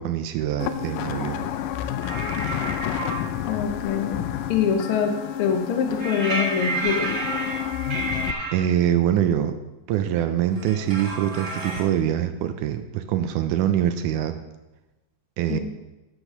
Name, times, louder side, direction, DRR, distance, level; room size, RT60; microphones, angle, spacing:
voice 1, 0.0-1.5 8.5-9.6 9.9-14.4 15.4-15.6, right 10 dB, 80° right, 9 dB, 2.0 m, -24 dB
sound 1, 0.6-8.3, left 11 dB, 90° left, 2.2 m, -30 dB
sound 2, 2.0-3.2 6.0-8.5 10.5-11.8, right 2 dB, 45° right, 1.0 m, -30 dB
voice 2, 3.5-4.2 4.5-7.1 15.5-15.6, left 7 dB, 75° left, 5 dB, 1.3 m, -24 dB
10.0 x 5.0 x 6.5 m, 1.1 s
omnidirectional pair, 3.7 m